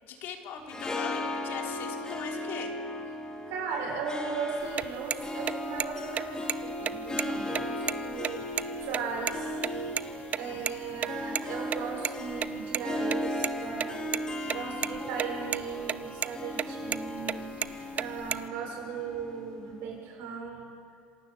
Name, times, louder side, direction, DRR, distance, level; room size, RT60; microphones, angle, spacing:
voice 1, 0.0-2.7 10.4-11.4 14.4-15.5 17.7-18.4, left 7 dB, 60° left, 2 dB, 3.6 m, -43 dB
Harp, 0.6-19.9, left 1 dB, 20° left, 3.2 m, -37 dB
voice 2, 3.5-9.9 10.4-14.1 14.5-17.6 17.9-20.7, right 5 dB, 70° right, 1 dB, 6.4 m, -37 dB
sound 1, 4.6-9.7 10.0-10.1 10.3-10.4 10.7-10.8 11.0-11.1 11.3-11.4 11.7-12.8 13.1-13.5 13.8-14.6 14.8-15.3 15.5-16.0 16.2-16.3 16.6-17.0 17.3-18.5, right 8 dB, 40° right, 0.5 m, -30 dB
26.5 x 15.0 x 8.8 m, 2.3 s
supercardioid pair, 95°, 4 cm